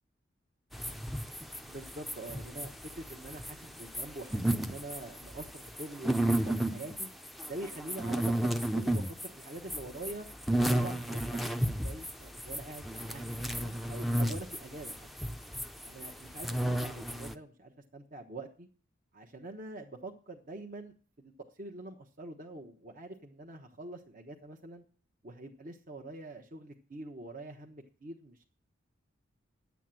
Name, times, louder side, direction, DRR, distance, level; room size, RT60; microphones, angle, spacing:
sound 1, 0.7-17.3, right 1 dB, ahead, 0.5 m, -33 dB
voice 1, 1.6-7.1 7.5-10.3 10.7-15.1 15.8-18.7 19.1-24.8 25.2-28.4, right 2 dB, 45° right, 3 dB, 1.1 m, -45 dB
10.5 x 8.4 x 7.5 m, 0.42 s
head